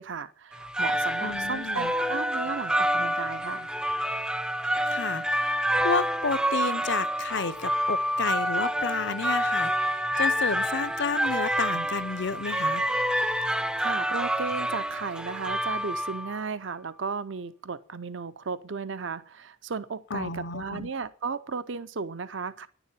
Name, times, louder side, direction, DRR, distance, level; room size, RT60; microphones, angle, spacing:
voice 1, 0.0-3.7 13.5-22.7, right 5 dB, 60° right, 0.6 m, -35 dB
sound 1, 0.5-16.4, equal, 5° right, 0.5 m, -28 dB
voice 2, 1.2-1.9 4.9-12.8 20.1-20.9, left 4 dB, 55° left, 0.7 m, -31 dB
10.5 x 7.0 x 8.8 m
head